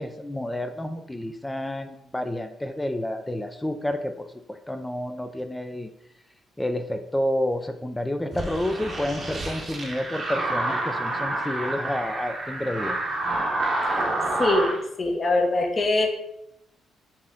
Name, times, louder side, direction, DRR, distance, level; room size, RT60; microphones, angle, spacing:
voice 1, 0.0-5.9 6.6-13.0, left 1 dB, 10° left, 7 dB, 0.4 m, -30 dB
sound 1, 8.3-14.8, right 2 dB, 40° right, 0.8 m, -28 dB
voice 2, 14.4-16.1, left 2 dB, 35° left, 2 dB, 0.9 m, -23 dB
4.1 x 2.7 x 3.6 m, 0.78 s
cardioid pair, 90°, 0 cm